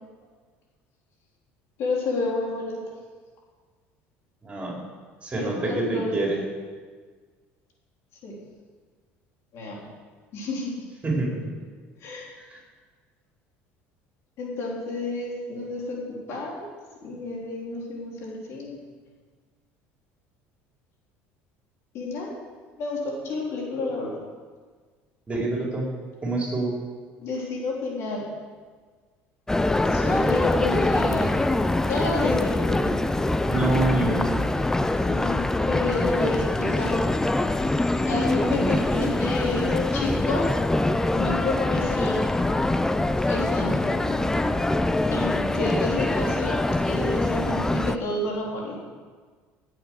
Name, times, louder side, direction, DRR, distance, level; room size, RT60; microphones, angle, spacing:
voice 1, 1.8-2.8 5.3-6.1 8.2-8.4 9.5-9.8 10.3-10.7 12.0-12.3 14.4-16.0 16.3-16.7 17.0-18.8 21.9-22.3 22.8-24.1 27.2-28.3 29.9-31.3 31.8-32.9 35.1-37.0 38.0-40.4 41.1-42.2 43.3-44.4 45.1-48.8, left 2 dB, 60° left, -2 dB, 3.9 m, -30 dB
voice 2, 4.4-4.8 5.2-6.4 11.0-11.4 12.5-12.6 25.3-25.9 26.2-26.7 33.5-34.4 38.4-38.9, right 2 dB, 25° right, -2 dB, 4.8 m, -26 dB
sound 1, 29.5-48.0, left 2 dB, 10° left, 0.6 m, -24 dB
16.5 x 7.9 x 6.5 m, 1.5 s
supercardioid pair, 95°, 5 cm